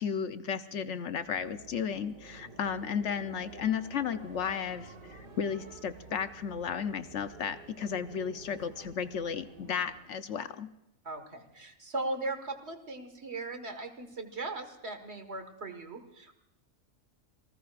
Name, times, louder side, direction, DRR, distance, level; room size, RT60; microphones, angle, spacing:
voice 1, 0.0-10.7, left 7 dB, 65° left, 10 dB, 1.0 m, -34 dB
sound 1, 0.9-10.2, right 4 dB, 80° right, 2.3 m, -51 dB
voice 2, 11.1-16.4, right 2 dB, 50° right, 7 dB, 1.9 m, -38 dB
28.0 x 19.5 x 2.5 m, 0.85 s
omnidirectional pair, 1.4 m